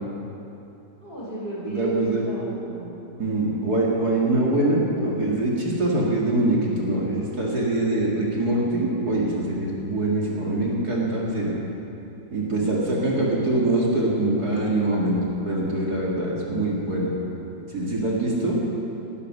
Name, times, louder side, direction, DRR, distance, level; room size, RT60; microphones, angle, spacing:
voice 1, 1.0-3.0 12.5-12.9 13.5-13.8, right 1 dB, 30° left, -6 dB, 4.9 m, -35 dB
voice 2, 1.6-2.2 3.2-11.6 12.3-17.1 17.7-18.6, right 2 dB, 55° right, -4 dB, 2.8 m, -24 dB
20.0 x 11.5 x 6.2 m, 2.9 s
omnidirectional pair, 2.0 m